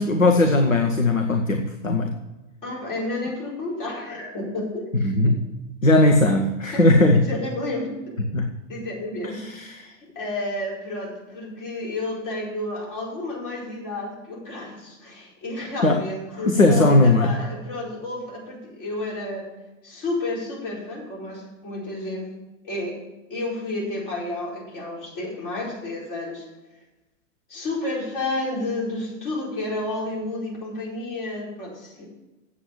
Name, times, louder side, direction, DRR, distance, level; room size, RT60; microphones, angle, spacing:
voice 1, 0.0-2.1 4.9-5.4 5.8-7.2 8.3-8.5 9.2-9.9 15.8-16.0 16.5-17.3, left 2 dB, 85° left, 5 dB, 1.0 m, -18 dB
voice 2, 2.6-4.9 6.7-6.9 7.1-8.1 8.7-19.5 19.8-22.3 22.6-23.0 23.3-26.5 27.5-32.1, left 2 dB, 45° left, -3 dB, 4.7 m, -31 dB
8.0 x 7.7 x 8.0 m, 1.1 s
figure-of-eight pair, 100°, 38 cm